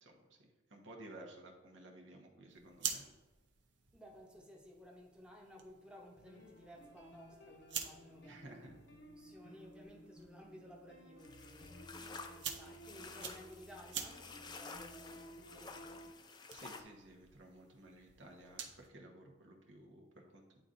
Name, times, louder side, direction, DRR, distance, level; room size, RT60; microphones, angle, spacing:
voice 1, 0.0-3.1 8.2-8.7 16.5-20.6, right 1 dB, 80° right, 1 dB, 1.2 m, -55 dB
sound 1, 2.5-18.9, right 7 dB, 65° right, 0.8 m, -49 dB
voice 2, 3.9-8.6 9.2-11.9 12.3-16.1, equal, 5° right, -2 dB, 0.8 m, -57 dB
sound 2, 6.2-16.1, equal, 70° left, 0.8 m, -56 dB
sound 3, 11.2-16.8, left 4 dB, 20° left, 0.4 m, -52 dB
10.0 x 4.0 x 2.6 m, 1.1 s
head